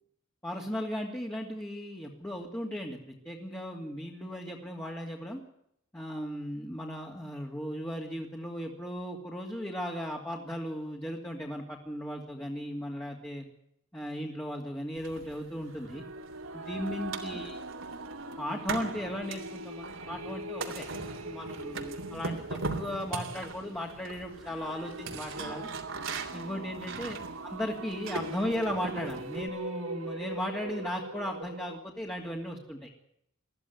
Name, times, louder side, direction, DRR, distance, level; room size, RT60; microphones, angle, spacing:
voice 1, 0.4-3.0 3.2-5.4 5.9-13.4 13.9-16.0 16.5-17.6 18.4-20.9 21.2-25.7 26.3-27.2 27.4-33.0, equal, 10° left, -1 dB, 2.6 m, -36 dB
sound 1, 15.0-29.5, right 3 dB, 70° right, 3.2 m, -40 dB
sound 2, 15.7-31.8, right 2 dB, 85° right, 2.1 m, -42 dB
22.0 x 14.5 x 9.4 m, 0.74 s
head